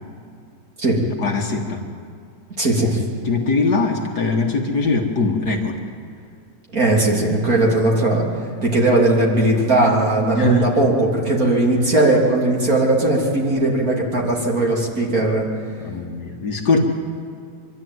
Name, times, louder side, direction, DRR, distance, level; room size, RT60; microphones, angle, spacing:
voice 1, 1.2-1.8 3.2-5.8 10.4-10.8 15.8-16.8, left 3 dB, 55° left, 2 dB, 2.0 m, -21 dB
voice 2, 2.6-3.0 6.7-8.3 8.6-15.5, right 2 dB, 45° right, -3 dB, 3.7 m, -18 dB
24.5 x 12.5 x 9.4 m, 2.3 s
omnidirectional pair, 2.2 m